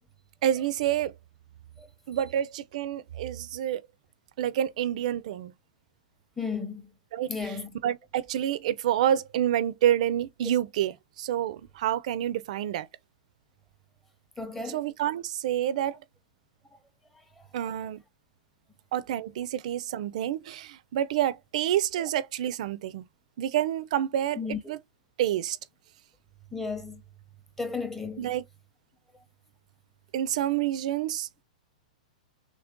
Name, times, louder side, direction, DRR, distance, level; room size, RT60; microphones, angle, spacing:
voice 1, 0.4-1.1 2.1-3.8 4.4-5.5 7.1-7.5 7.8-12.9 14.7-16.0 17.5-18.0 18.9-23.1 23.4-24.4 24.7-24.8 25.2-25.6 28.2-28.4 30.1-31.3, right 11 dB, 60° right, 0.4 m, -28 dB
voice 2, 6.4-6.9 7.3-7.7 14.4-14.8 17.4-17.5 24.4-24.6 26.5-27.0 27.6-28.3, left 4 dB, 5° left, 0.7 m, -34 dB
3.1 x 2.5 x 3.6 m
hypercardioid pair, 130°, 4 cm